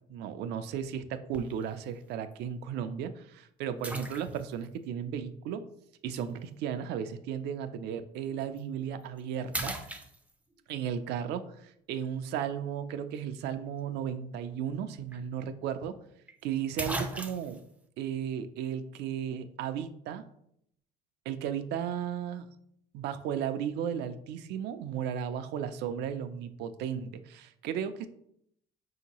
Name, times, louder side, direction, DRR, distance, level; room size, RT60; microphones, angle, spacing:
voice 1, 0.1-5.7 6.0-9.7 10.7-16.0 16.4-17.6 18.0-20.2 21.3-22.5 22.9-28.1, right 8 dB, 80° right, 10 dB, 0.4 m, -35 dB
sound 1, 1.3-1.7 2.3-2.4 3.8-4.7 6.1-6.3 8.4-8.6 9.0-9.2 9.5-10.6 14.7-14.8 15.1-15.2 16.3-16.4 16.8-17.6, right 1 dB, 10° right, 0.4 m, -37 dB
5.1 x 2.8 x 2.9 m, 0.72 s
cardioid pair, 110°, 17 cm